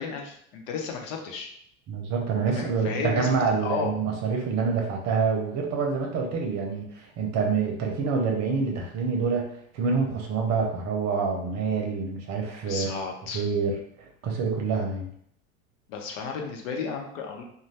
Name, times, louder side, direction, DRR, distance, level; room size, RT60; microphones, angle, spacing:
voice 1, 0.0-1.5 2.5-3.9 12.7-13.4 15.9-17.4, left 5 dB, 65° left, 2 dB, 0.8 m, -33 dB
voice 2, 1.9-13.0 13.3-15.1, right 5 dB, 40° right, 1 dB, 0.7 m, -27 dB
2.6 x 2.2 x 3.3 m, 0.68 s
hypercardioid pair, 110°, 42 cm